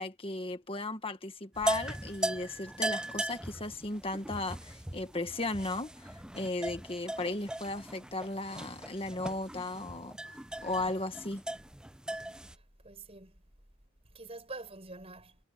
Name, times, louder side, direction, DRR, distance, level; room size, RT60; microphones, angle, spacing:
voice 1, 0.0-10.4 10.6-11.4, left 2 dB, 25° left, 1.6 m, -36 dB
sound 1, 1.6-12.5, right 1 dB, 5° right, 0.7 m, -38 dB
voice 2, 12.4-13.4 14.1-15.4, right 2 dB, 25° right, 5.8 m, -46 dB
head